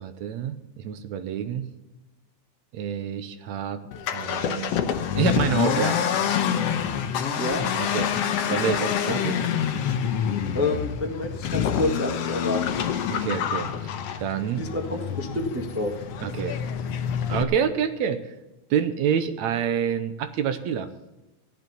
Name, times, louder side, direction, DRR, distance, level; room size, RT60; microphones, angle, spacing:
voice 1, 0.0-1.7 2.7-3.8 4.1-4.7 5.2-6.0 7.8-8.1 8.5-9.3 13.1-13.9 14.2-14.7 16.2-16.6 17.3-18.2 18.7-20.9, right 8 dB, 75° right, 10 dB, 2.1 m, -27 dB
Accelerating revving vroom, 3.9-17.4, left 8 dB, 65° left, 1.8 m, -27 dB
voice 2, 7.4-7.7 9.1-9.2 10.5-12.8 14.6-15.9, left 2 dB, 15° right, 1 dB, 0.4 m, -28 dB
15.5 x 11.0 x 5.6 m, 1.0 s
omnidirectional pair, 3.3 m